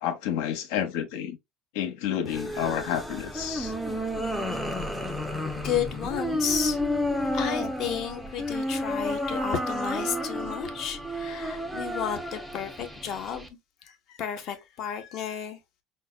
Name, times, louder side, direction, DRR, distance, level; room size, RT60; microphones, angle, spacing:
voice 1, 0.0-1.4 1.7-3.7, left 9 dB, 75° left, 0.8 m, -30 dB
sound 1, 2.3-13.5, equal, ahead, 0.4 m, -31 dB
voice 2, 5.6-6.8 7.3-13.5 13.8-15.6, left 8 dB, 40° left, 0.7 m, -32 dB
5.4 x 2.1 x 2.2 m
cardioid pair, 175°, 0 cm